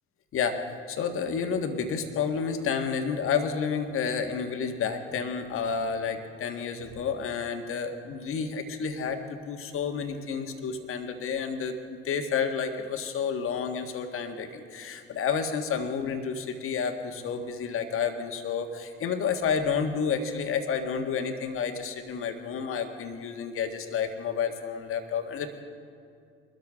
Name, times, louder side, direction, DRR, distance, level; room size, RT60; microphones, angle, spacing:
voice 1, 0.3-0.6 0.9-25.6, left 6 dB, 45° left, 6 dB, 1.6 m, -30 dB
23.0 x 13.0 x 3.6 m, 2.4 s
hypercardioid pair, 65°, 30 cm